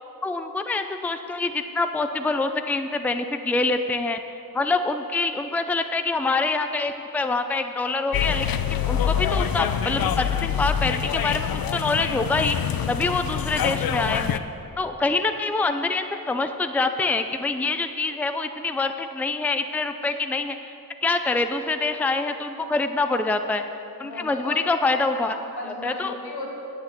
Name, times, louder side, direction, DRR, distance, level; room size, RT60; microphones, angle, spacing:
voice 1, 0.2-4.2 4.5-12.6 12.9-14.4 14.8-20.5 21.0-23.6 24.0-25.3 25.8-26.2, left 3 dB, 5° left, 8 dB, 0.5 m, -25 dB
sound 1, 8.1-14.4, left 9 dB, 70° left, 0.6 m, -25 dB
voice 2, 24.0-25.0 25.3-26.5, left 2 dB, 85° left, -2 dB, 2.5 m, -36 dB
10.5 x 8.2 x 8.1 m, 2.9 s
wide cardioid pair, 130°, 37 cm